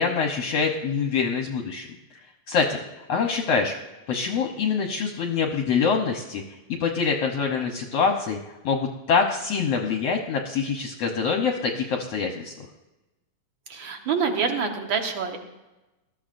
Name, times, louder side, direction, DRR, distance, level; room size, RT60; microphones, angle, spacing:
voice 1, 0.0-1.9 2.5-2.8 3.1-3.7 4.1-8.4 8.6-12.5, left 5 dB, 65° left, 2 dB, 1.8 m, -25 dB
voice 2, 13.7-15.4, right 5 dB, 50° right, 4 dB, 1.6 m, -26 dB
20.0 x 14.0 x 2.6 m, 1.1 s
omnidirectional pair, 3.6 m